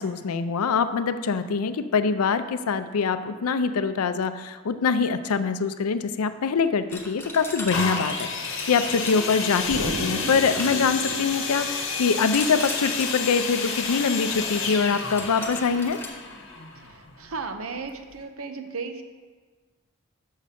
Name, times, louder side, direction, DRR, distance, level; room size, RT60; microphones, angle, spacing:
voice 1, 0.0-16.0, left 5 dB, 90° left, 11 dB, 0.5 m, -24 dB
sound 1, 6.9-9.9 10.5-11.5 12.3-13.3 14.8-16.1, left 2 dB, 10° left, 0.7 m, -38 dB
sound 2, 7.7-17.4 18.1-18.2, left 4 dB, 55° left, 1.1 m, -30 dB
Explosion, 9.7-12.4, right 3 dB, 35° right, 0.3 m, -35 dB
voice 2, 17.2-19.0, right 4 dB, 70° right, 7 dB, 0.7 m, -34 dB
6.5 x 6.2 x 5.8 m, 1.4 s
head